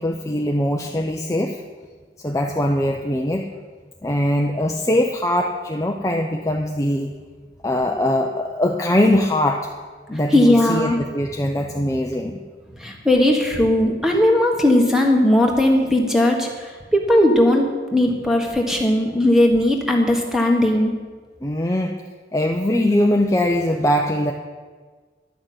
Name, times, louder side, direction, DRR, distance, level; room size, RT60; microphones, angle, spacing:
voice 1, 0.0-1.6 2.2-3.5 4.0-7.1 7.6-9.7 10.1-12.4 21.4-22.0 22.3-24.3, left 1 dB, 15° left, 2 dB, 0.6 m, -21 dB
voice 2, 10.3-11.0 12.8-20.9, left 1 dB, 5° right, 1 dB, 1.5 m, -18 dB
11.5 x 6.5 x 9.2 m, 1.5 s
head